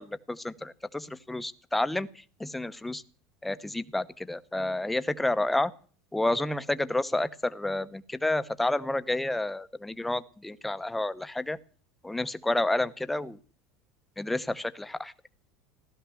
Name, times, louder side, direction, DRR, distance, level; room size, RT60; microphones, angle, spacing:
voice 1, 0.0-3.0 3.4-5.7 6.1-11.6 12.0-13.4 14.2-15.1, left 2 dB, 5° left, 13 dB, 0.8 m, -30 dB
16.0 x 13.0 x 7.0 m, 0.43 s
supercardioid pair, 140°, 2 cm